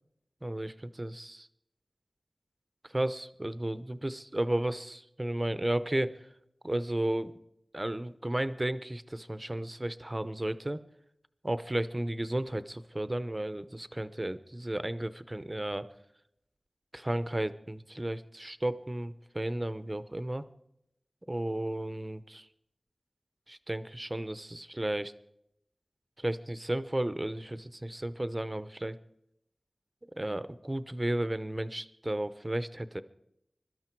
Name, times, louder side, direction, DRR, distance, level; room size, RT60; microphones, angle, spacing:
voice 1, 0.4-1.5 2.9-6.3 6.6-7.3 7.7-10.8 11.4-15.9 16.9-20.5 21.3-22.5 23.5-25.1 26.2-29.0 30.2-33.0, right 1 dB, 25° right, 14 dB, 0.7 m, -33 dB
22.0 x 12.5 x 4.6 m, 0.81 s
wide cardioid pair, 70°, 0 cm